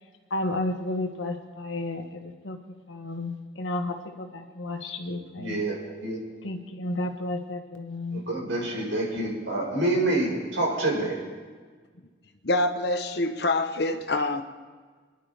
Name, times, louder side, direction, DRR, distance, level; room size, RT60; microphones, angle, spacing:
voice 1, 0.3-5.5 6.4-8.3, left 2 dB, 85° left, 5 dB, 1.4 m, -32 dB
voice 2, 5.4-6.2 8.1-11.2, right 2 dB, 85° right, -3 dB, 5.0 m, -27 dB
voice 3, 12.4-14.4, left 2 dB, 60° left, 7 dB, 1.0 m, -25 dB
27.5 x 11.0 x 3.5 m, 1.5 s
head